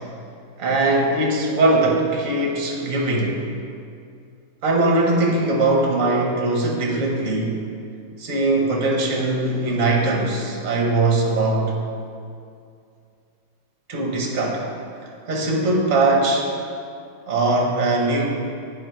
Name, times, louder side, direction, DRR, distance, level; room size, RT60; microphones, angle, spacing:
voice 1, 0.6-3.4 4.6-7.6 8.2-11.8 13.9-14.6 15.3-16.5 17.3-18.3, right 2 dB, 45° right, -1 dB, 1.3 m, -20 dB
8.9 x 6.0 x 4.6 m, 2.4 s
omnidirectional pair, 2.4 m